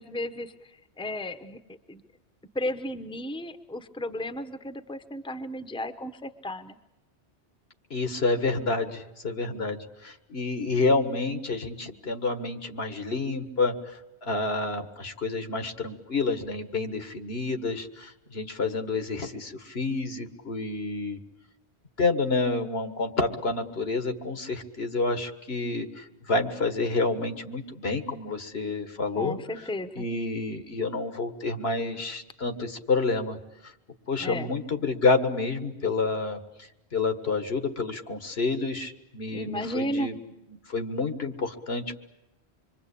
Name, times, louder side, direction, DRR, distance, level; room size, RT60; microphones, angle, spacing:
voice 1, 0.0-1.6 1.9-2.0 2.5-6.8 29.2-30.1 34.2-34.5 39.3-40.1, left 1 dB, 5° left, 9 dB, 1.0 m, -34 dB
voice 2, 7.9-21.2 22.0-29.4 30.0-33.4 34.1-40.1 40.7-42.0, left 3 dB, 70° left, 8 dB, 2.0 m, -29 dB
26.5 x 23.5 x 8.5 m, 0.90 s
omnidirectional pair, 1.1 m